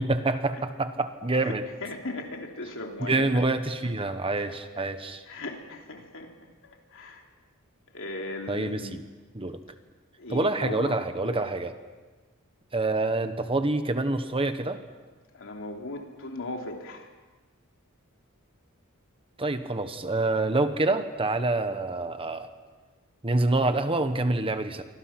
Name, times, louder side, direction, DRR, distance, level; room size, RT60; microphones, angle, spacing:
voice 1, 0.0-1.6 3.0-5.2 8.5-9.0 9.3-9.6 10.3-11.7 12.7-14.8 19.4-22.5 23.2-24.8, right 2 dB, 25° right, 9 dB, 1.3 m, -27 dB
voice 2, 1.3-3.4 3.8-3.9 4.5-4.8 5.3-6.3 6.6-7.2 7.9-9.0 10.2-11.4 15.3-17.1, left 2 dB, 65° left, 2 dB, 3.3 m, -38 dB
27.5 x 24.5 x 6.0 m, 1.3 s
head